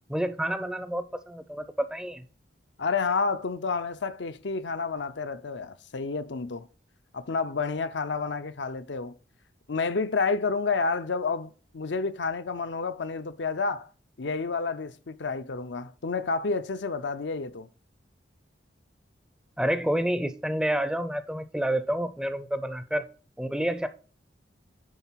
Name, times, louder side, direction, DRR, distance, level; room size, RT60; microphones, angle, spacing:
voice 1, 0.1-2.2 19.6-23.0 23.4-23.9, right 1 dB, 5° right, 0.5 m, -29 dB
voice 2, 2.8-6.7 7.1-9.1 9.7-13.9 14.2-17.7, left 4 dB, 75° left, 0.6 m, -30 dB
10.5 x 3.8 x 5.7 m
head